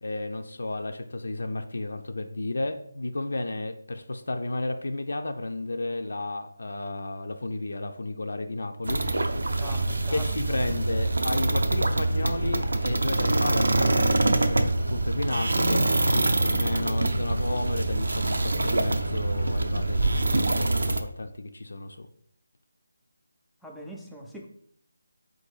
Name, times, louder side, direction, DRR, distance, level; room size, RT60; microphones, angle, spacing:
voice 1, 0.0-9.1 10.1-22.1, left 2 dB, 70° left, 6 dB, 0.4 m, -33 dB
sound 1, 8.8-21.0, right 2 dB, 80° right, 0.5 m, -25 dB
voice 2, 9.6-10.3 23.6-24.5, equal, 5° left, -1 dB, 0.4 m, -42 dB
3.8 x 2.6 x 4.6 m, 0.67 s
figure-of-eight pair, 165°, 0 cm